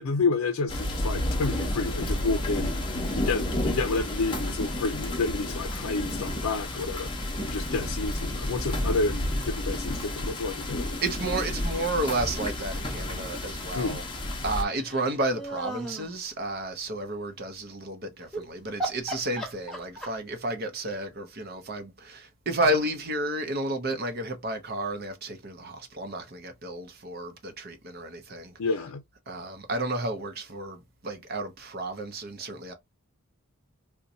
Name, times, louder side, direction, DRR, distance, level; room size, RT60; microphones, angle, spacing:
voice 1, 0.0-2.7 3.1-7.1 7.4-10.9 13.7-14.0 28.6-29.0, left 3 dB, 80° left, 0.5 m, -29 dB
sound 1, 0.7-14.6, left 1 dB, 20° left, 0.7 m, -31 dB
voice 2, 11.0-14.0 14.4-28.5 29.3-32.7, right 1 dB, 45° right, 0.6 m, -32 dB
sound 2, 14.7-16.1 18.2-18.4 18.8-20.3, right 2 dB, ahead, 1.0 m, -35 dB
3.9 x 2.2 x 2.6 m
head